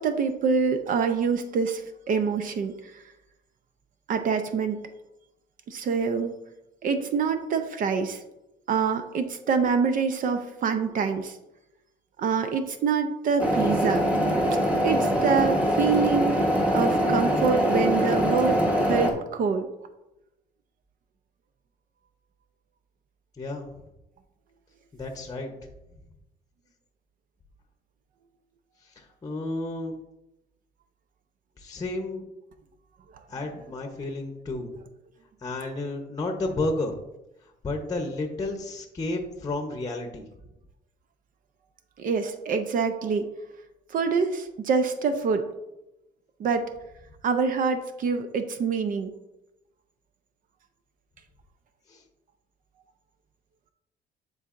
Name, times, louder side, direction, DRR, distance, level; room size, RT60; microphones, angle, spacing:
voice 1, 0.0-3.0 4.1-4.9 5.7-6.4 6.8-8.2 8.7-11.4 12.2-14.0 14.8-16.4 16.7-19.7 42.0-43.3 43.9-45.5 46.4-46.7 47.2-49.1, right 5 dB, 55° right, 8 dB, 0.6 m, -26 dB
sound 1, 13.4-19.1, equal, 10° right, 1.2 m, -23 dB
voice 2, 23.4-23.7 24.9-25.5 28.8-29.9 31.6-32.2 33.3-34.7 35.4-36.9 37.4-40.3 51.9-52.0, left 2 dB, 20° left, 4 dB, 0.8 m, -32 dB
10.0 x 4.0 x 2.5 m, 0.91 s
cardioid pair, 110°, 17 cm